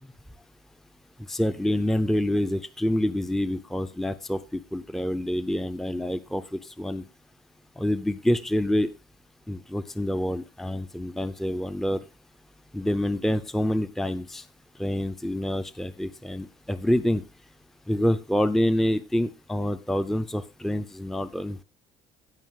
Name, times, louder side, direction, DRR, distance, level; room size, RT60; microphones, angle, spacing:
voice 1, 1.3-7.0 7.8-8.9 9.5-12.0 12.7-14.4 14.8-17.2 17.9-21.6, left 1 dB, ahead, 11 dB, 0.6 m, -27 dB
15.5 x 5.6 x 3.7 m, 0.29 s
cardioid pair, 110°, 17 cm